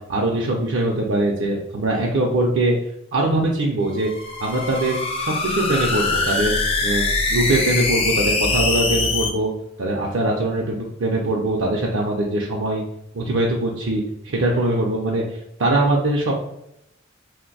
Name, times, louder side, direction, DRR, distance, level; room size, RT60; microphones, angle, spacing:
voice 1, 0.1-2.7 3.1-4.1 4.4-6.6 6.8-9.5 9.8-12.8 13.1-15.2 15.6-16.3, right 2 dB, 70° right, -1 dB, 0.5 m, -22 dB
sound 1, 3.9-9.3, left 3 dB, 30° left, 0.4 m, -23 dB
2.5 x 2.1 x 3.9 m, 0.81 s
head